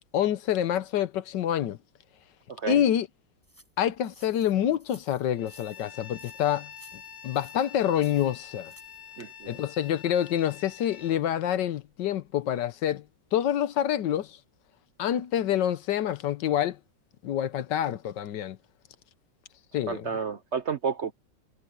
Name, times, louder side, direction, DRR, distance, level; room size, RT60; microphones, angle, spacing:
voice 1, 0.1-1.8 2.7-3.1 3.8-6.7 7.2-8.7 9.5-13.0 13.3-14.4 15.0-16.8 17.2-18.6 19.7-20.1, left 10 dB, 75° left, 1.5 m, -27 dB
sound 1, 3.4-9.0, equal, 5° right, 5.5 m, -57 dB
Bowed string instrument, 5.3-11.2, left 8 dB, 35° left, 4.0 m, -46 dB
voice 2, 9.2-9.5 19.9-21.1, right 6 dB, 55° right, 0.8 m, -31 dB
omnidirectional pair, 2.0 m